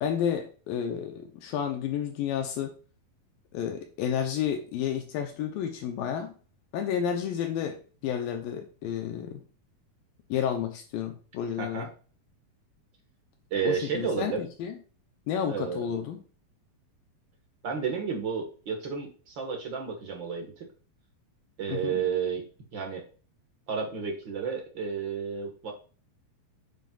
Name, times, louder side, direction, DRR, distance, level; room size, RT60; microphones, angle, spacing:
voice 1, 0.0-2.7 3.5-6.3 6.7-9.4 10.3-11.9 13.6-14.7 15.3-16.2 21.7-22.0, left 8 dB, 75° left, 5 dB, 2.5 m, -31 dB
voice 2, 11.6-11.9 13.5-14.4 15.5-15.9 17.6-20.6 21.6-22.4 22.7-23.0 23.7-25.7, right 6 dB, 50° right, 2 dB, 1.5 m, -31 dB
8.9 x 7.6 x 2.4 m, 0.38 s
omnidirectional pair, 4.3 m